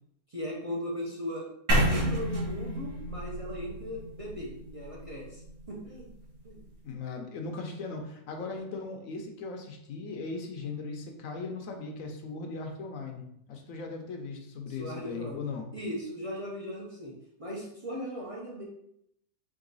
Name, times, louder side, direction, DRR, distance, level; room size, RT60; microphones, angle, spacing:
voice 1, 0.3-1.5 1.9-5.4 5.7-6.1 6.4-6.6 14.7-15.4 15.7-17.1 17.4-18.7, equal, 30° right, -4 dB, 0.6 m, -38 dB
sound 1, 1.7-5.7, equal, 65° right, 1.6 m, -30 dB
voice 2, 6.8-15.7, left 4 dB, 65° left, 3 dB, 1.0 m, -38 dB
3.9 x 3.3 x 3.9 m, 0.74 s
omnidirectional pair, 1.7 m